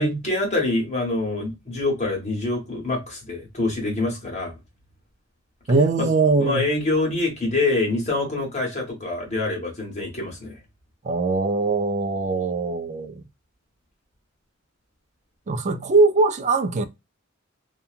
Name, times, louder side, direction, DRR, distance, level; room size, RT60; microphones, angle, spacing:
voice 1, 0.0-4.5 6.0-6.1 6.4-10.6, left 2 dB, 35° left, 1.4 m, -25 dB
voice 2, 5.7-6.7 11.0-13.2 15.5-16.9, right 3 dB, 35° right, 0.4 m, -21 dB
2.8 x 2.3 x 2.4 m
head